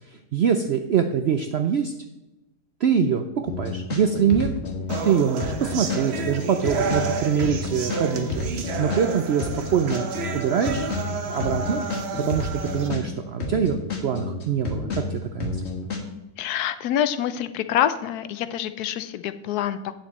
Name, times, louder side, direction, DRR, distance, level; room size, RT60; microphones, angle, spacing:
voice 1, 0.3-1.9 2.8-4.5 5.0-8.4 8.8-10.1 10.3-10.9 11.2-11.8 12.3-13.8 14.0-15.6, right 7 dB, 75° right, 7 dB, 0.6 m, -24 dB
sound 1, 3.5-5.1 5.4-9.1 9.4-13.1 13.4-16.0, left 3 dB, 45° left, 1.6 m, -30 dB
sound 2, 4.9-12.9, right 5 dB, 50° right, 0.9 m, -31 dB
voice 2, 16.4-19.9, left 10 dB, 80° left, 12 dB, 1.1 m, -26 dB
9.0 x 7.3 x 4.2 m, 0.99 s
omnidirectional pair, 1.7 m